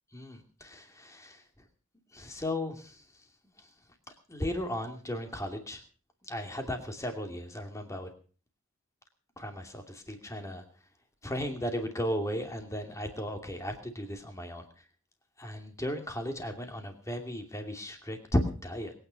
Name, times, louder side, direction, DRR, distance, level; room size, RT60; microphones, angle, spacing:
voice 1, 0.1-1.4 2.1-3.0 4.3-5.8 6.3-8.1 9.4-10.6 11.2-14.6 15.4-18.9, left 1 dB, 15° left, 5 dB, 2.6 m, -35 dB
21.5 x 9.7 x 5.8 m, 0.40 s
head